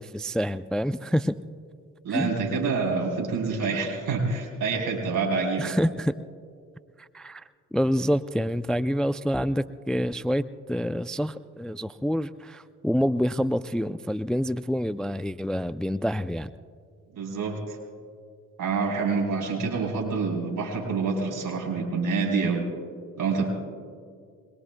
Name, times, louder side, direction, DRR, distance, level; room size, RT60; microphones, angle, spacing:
voice 1, 0.0-1.4 2.1-2.3 5.6-6.2 7.0-16.5, equal, ahead, 14 dB, 0.4 m, -27 dB
voice 2, 2.0-5.7 17.1-17.8 18.6-22.7 23.2-23.5, right 4 dB, 70° right, 1 dB, 3.8 m, -27 dB
23.5 x 21.5 x 2.2 m, 2.2 s
supercardioid pair, 50°, 34 cm